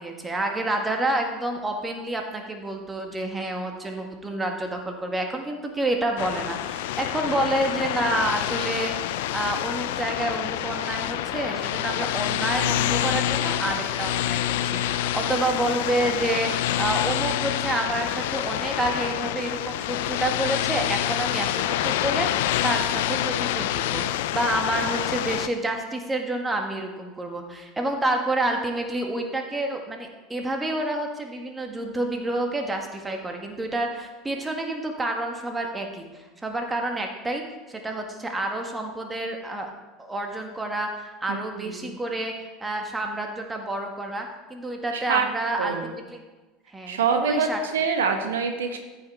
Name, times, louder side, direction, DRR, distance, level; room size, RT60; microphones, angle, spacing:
voice 1, 0.0-37.4 37.7-39.7 40.0-46.2 46.7-47.6, right 1 dB, 15° right, 3 dB, 1.7 m, -29 dB
sound 1, 6.2-25.5, left 12 dB, 65° left, 0.5 m, -27 dB
voice 2, 41.3-41.9 45.1-45.3 45.6-45.9 46.9-48.8, right 6 dB, 75° right, 5 dB, 1.0 m, -25 dB
13.5 x 5.8 x 4.8 m, 1.2 s
hypercardioid pair, 75°, 0 cm